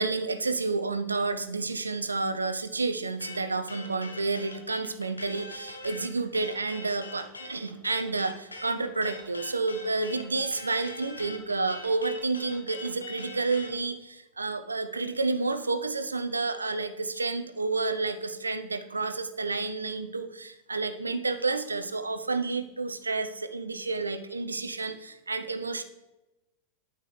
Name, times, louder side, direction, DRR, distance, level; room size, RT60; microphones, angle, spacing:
voice 1, 0.0-25.8, right 3 dB, 80° right, 11 dB, 0.6 m, -30 dB
sound 1, 3.2-13.7, left 2 dB, 80° left, 1.1 m, -42 dB
9.3 x 9.0 x 3.3 m, 1.0 s
figure-of-eight pair, 90°, 0 cm